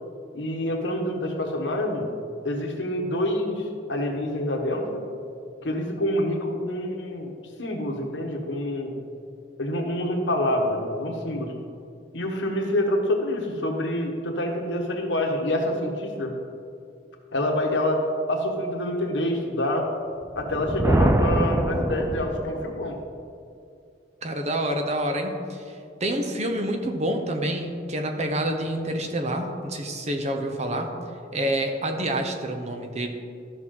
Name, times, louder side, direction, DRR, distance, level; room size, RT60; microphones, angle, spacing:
voice 1, 0.3-2.1 2.4-5.0 5.6-7.3 7.6-8.9 9.6-11.5 12.1-16.3 17.3-19.9 20.3-23.0, left 1 dB, 85° left, 1 dB, 1.4 m, -27 dB
Thunder, 20.3-22.8, right 1 dB, 15° right, 0.3 m, -24 dB
voice 2, 24.2-25.7 26.0-30.9 31.3-33.1, right 1 dB, 40° right, 4 dB, 0.9 m, -27 dB
13.5 x 6.0 x 3.8 m, 2.4 s
head